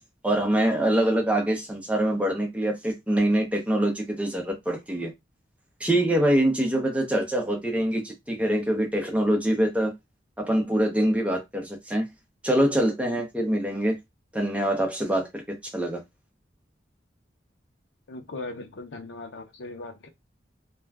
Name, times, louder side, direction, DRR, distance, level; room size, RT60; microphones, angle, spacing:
voice 1, 0.2-5.1 5.8-9.9 10.4-12.0 12.4-14.0 14.3-16.0, right 1 dB, 5° right, 0.6 m, -24 dB
voice 2, 18.1-20.1, left 2 dB, 85° left, 0.7 m, -38 dB
2.4 x 2.2 x 3.3 m
head